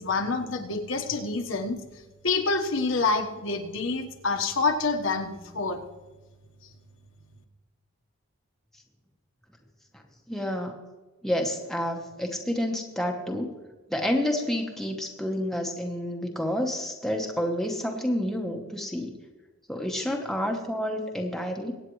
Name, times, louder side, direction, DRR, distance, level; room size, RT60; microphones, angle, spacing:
voice 1, 0.0-1.8 2.2-5.8, left 3 dB, 60° left, 4 dB, 1.2 m, -27 dB
voice 2, 10.3-10.7 11.2-13.5 13.9-19.1 19.7-21.7, equal, ahead, 1 dB, 1.0 m, -29 dB
23.5 x 9.0 x 3.1 m, 1.3 s
head